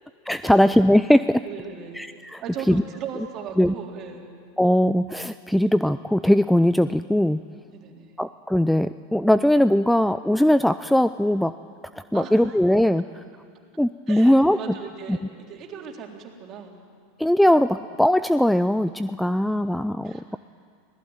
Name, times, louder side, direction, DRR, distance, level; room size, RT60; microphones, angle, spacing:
voice 1, 0.3-1.4 2.0-2.4 2.7-2.8 3.6-3.7 4.6-7.4 8.2-11.5 11.9-13.2 13.8-14.6 15.1-15.2 17.2-20.4, left 1 dB, ahead, 13 dB, 0.5 m, -20 dB
voice 2, 1.4-2.0 2.4-4.3 7.7-8.2 12.1-12.6 14.1-15.2 15.5-16.8 20.0-20.4, right 7 dB, 40° right, 1 dB, 3.8 m, -38 dB
25.5 x 18.0 x 9.0 m, 2.2 s
hypercardioid pair, 90°, 0 cm